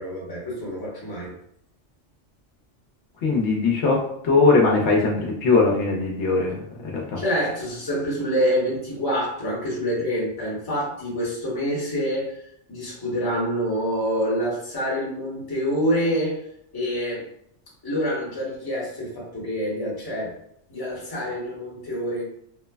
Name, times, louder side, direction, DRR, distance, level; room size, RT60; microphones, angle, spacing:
voice 1, 0.0-1.3 7.2-12.4 12.7-16.4 16.7-17.2 17.8-20.3 20.7-22.2, equal, 20° left, -6 dB, 0.8 m, -26 dB
voice 2, 3.2-6.5 6.8-7.2, left 3 dB, 75° left, -1 dB, 0.8 m, -20 dB
3.0 x 2.0 x 2.2 m, 0.72 s
omnidirectional pair, 1.2 m